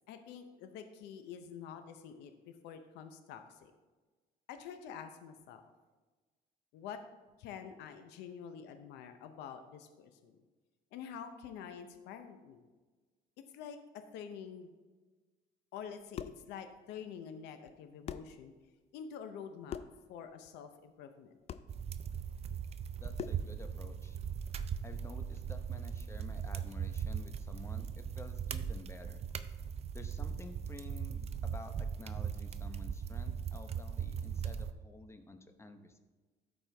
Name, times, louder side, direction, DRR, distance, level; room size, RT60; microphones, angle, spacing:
voice 1, 0.1-3.7 4.5-5.6 6.7-7.0 7.4-10.4 10.9-12.6 13.5-14.7 15.7-18.5 18.9-19.8 20.1-21.3, left 7 dB, 90° left, 8 dB, 0.6 m, -47 dB
sound 1, 15.9-16.5 17.7-17.8 18.1-18.4 19.7-20.0 21.5-21.7 23.2-23.5, left 9 dB, 40° left, 0.4 m, -42 dB
sound 2, 21.7-34.7, right 7 dB, 40° right, 0.4 m, -39 dB
voice 2, 23.0-24.2 24.8-29.2 29.9-36.0, left 2 dB, 15° left, 7 dB, 0.8 m, -51 dB
13.0 x 4.4 x 3.4 m, 1.3 s
cardioid pair, 110°, 17 cm